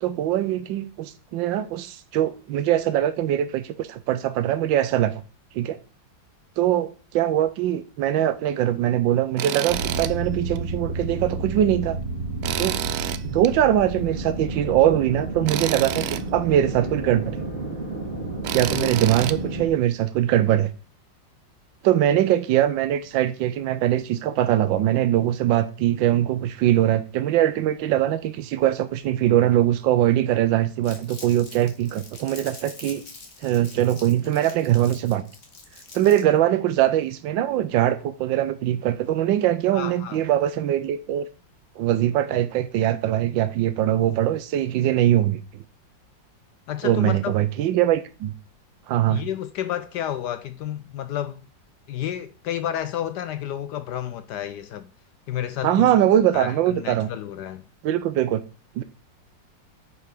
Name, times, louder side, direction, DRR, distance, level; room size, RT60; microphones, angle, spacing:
voice 1, 0.0-5.2 5.5-5.8 6.6-12.0 12.6-12.8 13.2-17.4 18.5-20.7 21.8-33.0 33.4-35.2 35.9-41.3 41.8-45.4 46.8-48.3 48.9-49.2 55.6-57.1 57.8-58.4 58.8-58.9, right 12 dB, 90° right, 1.4 m, -22 dB
Tools, 9.4-10.1 10.5-10.6 12.4-13.5 15.5-16.2 18.4-19.4, right 12 dB, 70° right, 0.9 m, -29 dB
sound 1, 9.7-19.7, right 2 dB, 30° right, 2.8 m, -31 dB
Crumpling crinkling, 30.8-36.4, left 3 dB, 40° left, 2.0 m, -44 dB
voice 2, 39.7-40.2 46.7-47.3 49.1-51.4 51.9-54.9 55.3-55.9 56.3-57.7, left 11 dB, 75° left, 1.1 m, -31 dB
8.4 x 5.4 x 5.8 m
omnidirectional pair, 2.0 m